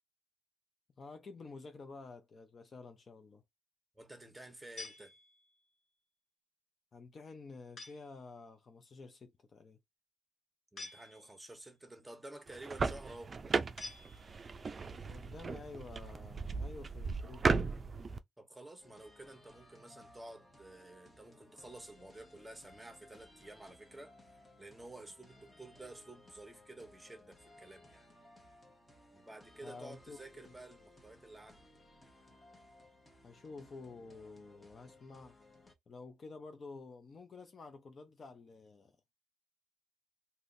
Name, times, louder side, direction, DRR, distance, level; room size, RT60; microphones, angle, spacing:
voice 1, 1.0-3.4 6.9-9.8 15.0-17.7 29.6-30.5 33.2-35.4 35.9-39.0, left 4 dB, 40° left, 0.6 m, -50 dB
voice 2, 3.9-5.1 10.7-13.3 18.4-24.1 24.6-28.1 29.1-31.6, right 2 dB, 10° right, 1.1 m, -51 dB
sound 1, 4.8-5.7 7.8-8.3 10.8-11.6 13.8-14.7, left 3 dB, 55° left, 1.1 m, -50 dB
sound 2, 12.5-18.2, right 4 dB, 35° right, 0.4 m, -36 dB
sound 3, 18.8-35.7, left 1 dB, 20° left, 1.1 m, -61 dB
3.6 x 2.8 x 2.6 m
cardioid pair, 90°, 0 cm